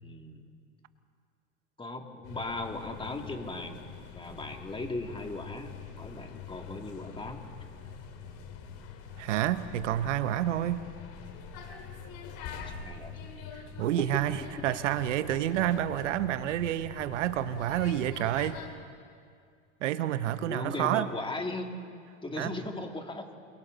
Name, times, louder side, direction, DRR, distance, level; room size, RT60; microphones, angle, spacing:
voice 1, 0.0-0.4 1.8-3.9 4.1-7.5 12.5-13.1 20.4-21.7 22.2-23.3, left 2 dB, 15° left, 4 dB, 2.4 m, -38 dB
sound 1, 2.2-18.7, left 6 dB, 55° left, 2.9 m, -44 dB
voice 2, 9.2-10.8 13.5-18.6 19.8-21.1 22.4-22.5, right 12 dB, 80° right, 13 dB, 1.0 m, -29 dB
28.5 x 23.0 x 4.0 m, 2.2 s
hypercardioid pair, 90°, 36 cm